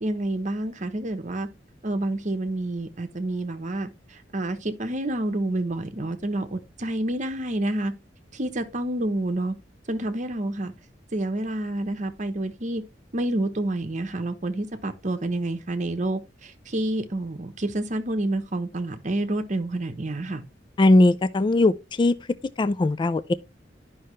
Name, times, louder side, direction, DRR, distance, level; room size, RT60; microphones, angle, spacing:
voice 1, 0.0-1.5 1.8-7.9 8.3-9.5 9.9-10.7 11.1-12.8 13.1-20.4, right 1 dB, 40° right, 1.0 m, -28 dB
voice 2, 20.8-22.2 22.6-23.3, left 2 dB, 25° left, 0.3 m, -19 dB
10.5 x 5.6 x 3.1 m
head